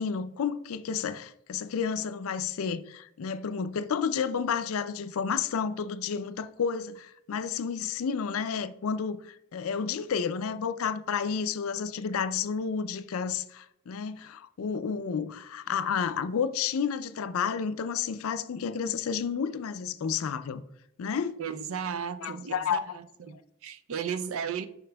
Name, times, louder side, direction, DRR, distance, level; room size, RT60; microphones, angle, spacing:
voice 1, 0.0-20.6 21.0-21.4 22.2-23.0, left 6 dB, 85° left, 0.4 m, -31 dB
voice 2, 21.4-22.8 23.3-24.7, right 7 dB, 80° right, 0.5 m, -34 dB
7.4 x 5.7 x 2.2 m
head